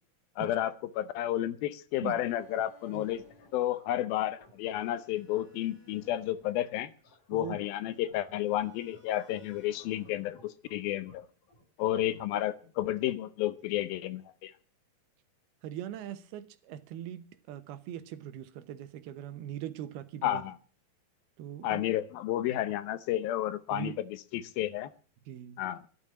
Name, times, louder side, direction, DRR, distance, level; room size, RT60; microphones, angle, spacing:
voice 1, 0.4-3.2 3.5-6.9 7.3-11.3 11.8-14.5 20.2-20.6 21.6-24.9 25.6-25.8, left 13 dB, 75° left, 2.5 m, -31 dB
sound 1, 2.2-12.6, equal, 45° left, 8.5 m, -59 dB
voice 2, 15.6-20.4 21.4-21.8 23.7-23.9 25.3-25.6, right 11 dB, 80° right, 2.8 m, -41 dB
13.0 x 11.0 x 8.6 m
omnidirectional pair, 4.5 m